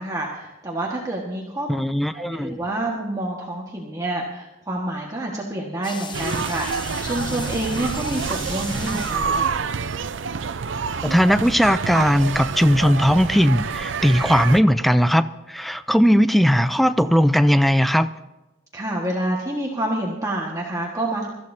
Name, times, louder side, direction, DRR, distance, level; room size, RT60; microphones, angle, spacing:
voice 1, 0.0-1.8 2.1-9.5 18.7-21.3, right 1 dB, 20° right, 1.5 m, -28 dB
voice 2, 1.7-2.6 11.0-18.1, equal, ahead, 0.4 m, -18 dB
sound 1, 5.8-9.7, left 5 dB, 25° left, 0.8 m, -37 dB
sound 2, 6.1-14.6, right 5 dB, 70° right, 0.5 m, -27 dB
24.5 x 14.0 x 2.7 m
head